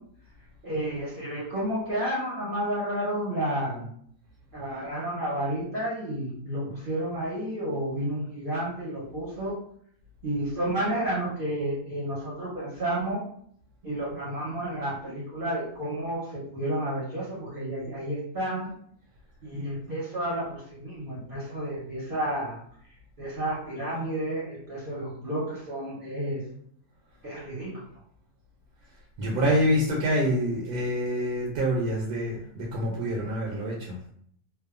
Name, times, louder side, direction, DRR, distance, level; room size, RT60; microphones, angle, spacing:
voice 1, 0.6-3.9 4.5-9.6 10.2-13.2 13.8-18.7 19.4-22.6 23.2-26.4 27.2-27.8, right 1 dB, 45° right, -7 dB, 0.7 m, -31 dB
voice 2, 29.2-34.0, equal, 75° right, -3 dB, 1.0 m, -26 dB
2.7 x 2.2 x 2.3 m, 0.65 s
omnidirectional pair, 1.7 m